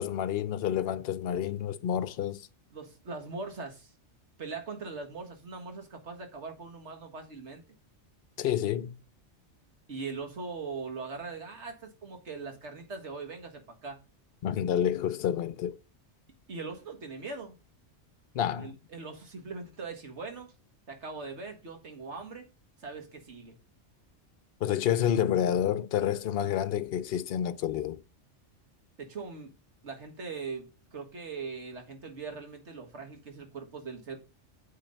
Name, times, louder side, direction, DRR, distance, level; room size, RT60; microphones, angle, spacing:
voice 1, 0.0-2.5 8.4-9.0 14.4-15.8 18.3-18.7 24.6-28.0, left 10 dB, 60° left, 0.8 m, -29 dB
voice 2, 2.7-3.9 4.4-7.6 9.9-14.0 16.5-17.6 18.6-20.5 20.9-22.5 22.8-23.6 29.0-29.5 29.8-34.2, right 4 dB, 70° right, 1.9 m, -41 dB
9.0 x 3.8 x 5.3 m
omnidirectional pair, 1.2 m